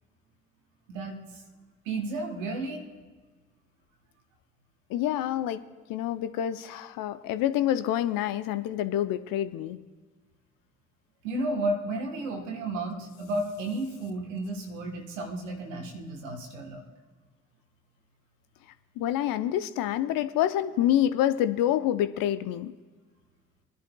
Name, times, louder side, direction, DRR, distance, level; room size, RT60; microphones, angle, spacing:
voice 1, 1.8-2.8 11.2-16.9, right 2 dB, 85° right, 2 dB, 1.3 m, -32 dB
voice 2, 4.9-5.6 5.9-9.8 19.0-22.7, left 11 dB, 65° left, 12 dB, 0.7 m, -27 dB
22.5 x 11.0 x 2.3 m, 1.4 s
hypercardioid pair, 40°, 37 cm